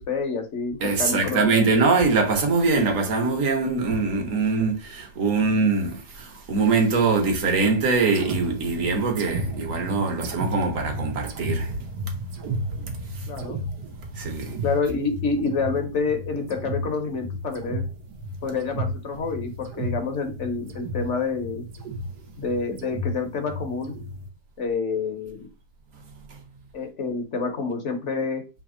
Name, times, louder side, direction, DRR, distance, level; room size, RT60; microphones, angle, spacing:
voice 1, 0.0-1.7 13.3-13.6 14.6-17.8 18.4-21.6 22.4-24.0 24.6-25.5 26.7-28.4, left 4 dB, 50° left, 1.1 m, -28 dB
voice 2, 0.8-11.7 14.2-14.6, right 4 dB, 55° right, 1.4 m, -23 dB
sound 1, 8.1-24.3, right 1 dB, 85° right, 1.4 m, -33 dB
3.5 x 2.9 x 4.8 m
omnidirectional pair, 1.8 m